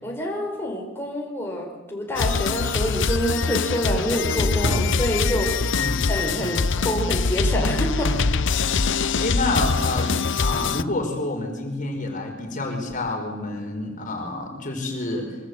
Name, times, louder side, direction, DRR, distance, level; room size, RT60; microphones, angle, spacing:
voice 1, 0.0-5.7 6.1-8.1, equal, 10° left, 0 dB, 4.7 m, -27 dB
sound 1, 2.1-10.8, left 4 dB, 60° left, 0.8 m, -23 dB
sound 2, 2.6-10.5, equal, 80° right, 5.0 m, -38 dB
voice 2, 5.7-6.1 8.6-8.7 9.2-10.2 10.4-15.3, left 2 dB, 40° left, 3 dB, 5.0 m, -28 dB
25.5 x 24.5 x 8.0 m, 1.1 s
head